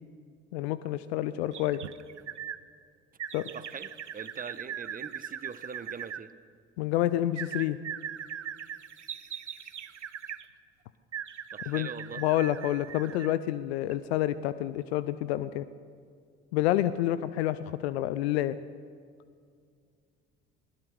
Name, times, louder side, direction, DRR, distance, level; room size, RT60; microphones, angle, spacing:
voice 1, 0.5-1.8 3.3-3.5 6.8-7.8 11.7-11.9 12.2-15.7 16.5-18.6, left 13 dB, 65° left, 15 dB, 0.7 m, -28 dB
sound 1, 1.5-2.6 3.2-6.2 7.3-10.4 11.1-13.4 13.8-13.9, right 9 dB, 85° right, 0.6 m, -40 dB
voice 2, 3.5-6.3 11.5-12.2, right 6 dB, 25° right, 14 dB, 1.1 m, -42 dB
20.5 x 19.5 x 6.5 m, 2.2 s
figure-of-eight pair, 55°, 35 cm